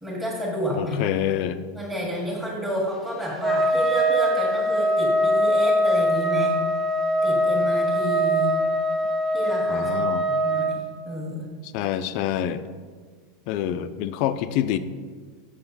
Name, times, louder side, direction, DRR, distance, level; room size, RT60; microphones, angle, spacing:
voice 1, 0.0-1.0 1.7-6.5 7.2-8.5 9.3-9.9 10.3-11.5, equal, 10° right, -7 dB, 1.7 m, -30 dB
voice 2, 0.8-1.6 9.7-10.3 11.7-12.6 13.5-14.8, left 11 dB, 60° left, 11 dB, 0.4 m, -26 dB
Trumpet, 3.4-10.7, equal, 30° right, 1.7 m, -22 dB
6.6 x 5.9 x 4.0 m, 1.6 s
supercardioid pair, 115°, 0 cm